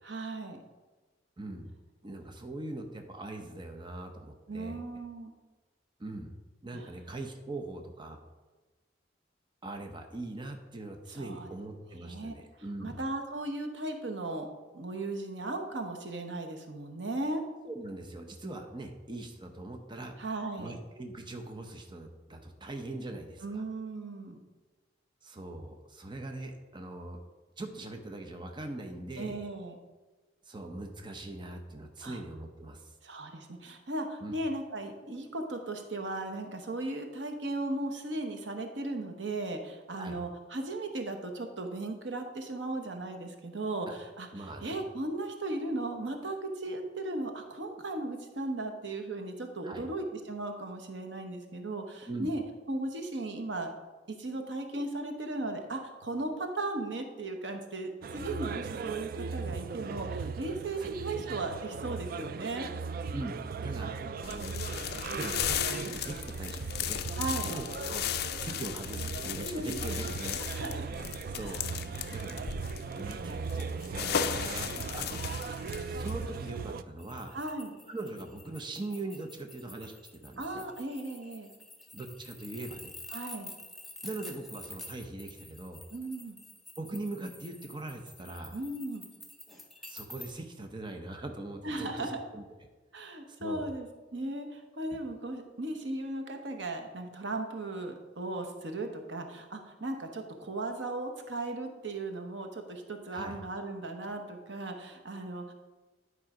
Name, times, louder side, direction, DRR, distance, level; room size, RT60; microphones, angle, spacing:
voice 1, 0.0-0.6 4.5-5.3 6.7-6.9 11.1-11.5 12.0-12.3 12.8-14.5 14.7-17.4 20.2-20.7 23.4-24.4 29.2-29.8 32.0-32.2 33.0-52.4 52.7-53.7 54.1-62.7 67.1-67.5 69.4-70.0 70.5-71.0 71.4-71.5 77.3-77.7 80.4-81.5 83.1-83.5 85.9-86.4 88.5-89.1 91.6-92.2 92.9-105.5, right 2 dB, 80° right, 5 dB, 1.1 m, -37 dB
voice 2, 1.4-1.7 2.0-4.8 6.0-6.3 6.6-8.2 9.6-13.0 17.6-20.2 20.6-23.6 25.2-27.2 27.6-29.4 30.4-32.9 34.2-34.3 40.0-40.2 43.9-44.0 44.3-44.8 49.6-49.9 52.1-52.3 60.8-61.3 63.1-63.4 63.6-63.9 64.3-64.7 65.1-67.1 67.4-70.4 71.4-71.6 72.1-72.5 72.9-75.2 75.8-77.4 77.9-80.6 81.9-82.9 84.0-85.8 86.8-88.6 89.9-92.4 93.4-93.7 103.1-103.4, right 2 dB, 25° right, 4 dB, 0.7 m, -41 dB
sound 1, 58.0-76.8, right 5 dB, 50° right, 0.3 m, -38 dB
sound 2, 64.2-76.5, left 9 dB, 60° left, 0.4 m, -36 dB
sound 3, 77.0-90.3, left 2 dB, ahead, 0.9 m, -49 dB
10.5 x 4.8 x 4.9 m, 1.2 s
head